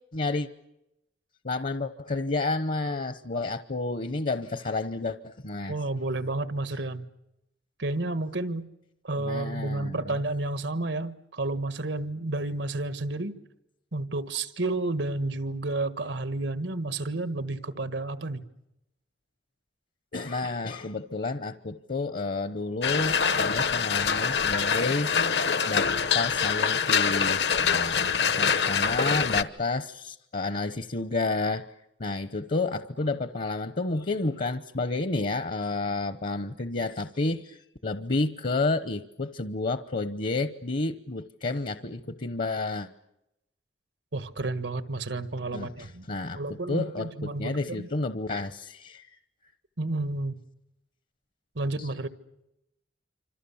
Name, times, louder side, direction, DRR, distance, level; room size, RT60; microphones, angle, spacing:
voice 1, 0.1-0.5 1.4-5.7 9.2-10.2 20.1-23.2 23.4-31.7 32.0-42.9 45.5-49.2 51.8-51.9, left 3 dB, 50° left, 11 dB, 0.9 m, -30 dB
voice 2, 5.7-7.0 7.8-8.6 9.0-13.3 13.9-18.4 44.1-46.1 46.3-47.9 49.8-50.4 51.5-52.1, right 2 dB, 90° right, 11 dB, 1.6 m, -31 dB
sound 1, 22.8-29.4, left 6 dB, 70° left, 1.2 m, -25 dB
27.0 x 26.5 x 7.1 m, 0.88 s
head